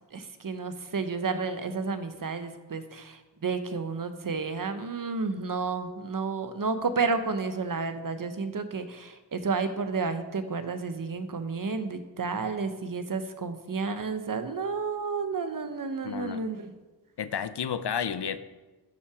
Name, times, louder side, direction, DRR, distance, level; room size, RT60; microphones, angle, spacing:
voice 1, 0.1-16.7, right 4 dB, 50° right, 9 dB, 0.9 m, -31 dB
voice 2, 16.0-16.4 17.2-18.4, left 7 dB, 70° left, 13 dB, 0.7 m, -31 dB
10.5 x 5.8 x 4.8 m, 1.2 s
wide cardioid pair, 80°, 43 cm